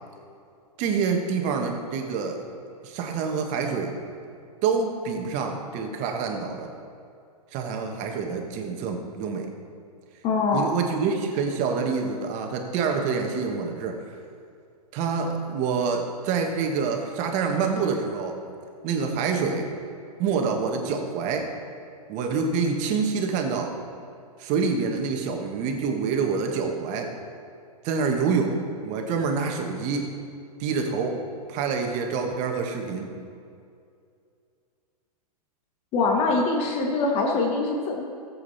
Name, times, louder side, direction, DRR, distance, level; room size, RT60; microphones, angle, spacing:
voice 1, 0.8-2.4 2.8-3.9 4.6-6.7 7.5-9.5 10.5-14.0 14.9-18.4 18.8-19.7 20.2-21.5 22.1-23.7 24.4-27.1 27.8-28.6 28.8-30.1 30.6-31.2 31.5-33.1, right 5 dB, 35° right, 3 dB, 1.5 m, -26 dB
voice 2, 10.2-10.7 35.9-38.0, left 3 dB, 30° left, 0 dB, 1.4 m, -23 dB
15.0 x 7.9 x 4.2 m, 2.4 s
hypercardioid pair, 120°, 21 cm